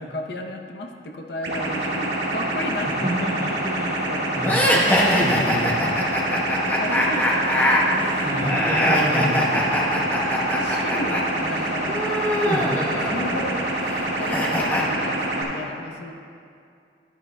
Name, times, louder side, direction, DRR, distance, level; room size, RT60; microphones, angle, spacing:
voice 1, 0.0-4.3 4.6-4.9 6.3-8.5 9.9-10.1 10.5-12.0 13.1-13.6 14.2-16.1, left 1 dB, 60° left, 2 dB, 0.7 m, -34 dB
sound 1, 1.4-15.4, right 1 dB, 80° right, 1.6 m, -26 dB
voice 2, 3.4-3.9 4.3-5.9 8.2-9.7 12.3-12.7, equal, 45° right, -10 dB, 1.8 m, -27 dB
sound 2, 4.4-11.2 11.5-14.8, equal, 10° left, 0.9 m, -23 dB
12.0 x 11.0 x 2.2 m, 2.4 s
head